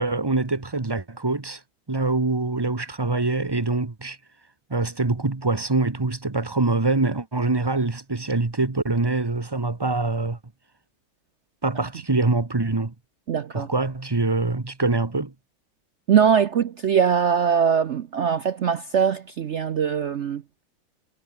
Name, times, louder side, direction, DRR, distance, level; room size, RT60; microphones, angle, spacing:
voice 1, 0.0-1.6 1.9-4.2 4.7-10.4 11.6-12.9 13.5-15.3, right 3 dB, 15° right, 0.9 m, -24 dB
voice 2, 13.3-13.7 16.1-20.4, right 7 dB, 70° right, 0.6 m, -21 dB
omnidirectional pair, 2.0 m